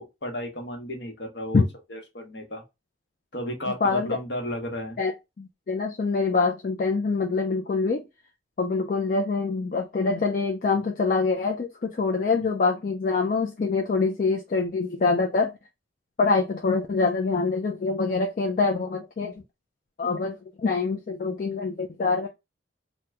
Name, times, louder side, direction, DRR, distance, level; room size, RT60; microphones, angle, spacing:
voice 1, 0.0-1.6 1.9-2.6 3.3-5.0, equal, 60° left, 1.0 m, -33 dB
voice 2, 3.8-4.2 5.0-5.1 5.4-8.0 8.6-15.6 16.2-19.3 20.0-22.3, left 4 dB, 45° left, 0.4 m, -25 dB
2.9 x 2.1 x 3.3 m
head